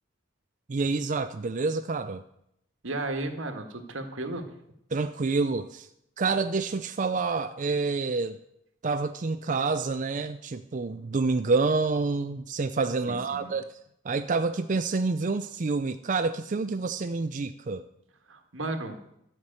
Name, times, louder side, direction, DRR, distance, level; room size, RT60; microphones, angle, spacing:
voice 1, 0.7-2.2 4.9-5.9 6.2-8.4 8.8-13.7 14.0-17.8, right 4 dB, 40° right, 8 dB, 0.5 m, -28 dB
voice 2, 2.8-4.4 13.1-13.6 18.3-19.0, right 2 dB, 85° right, 6 dB, 1.7 m, -34 dB
13.0 x 5.9 x 8.9 m, 0.77 s
head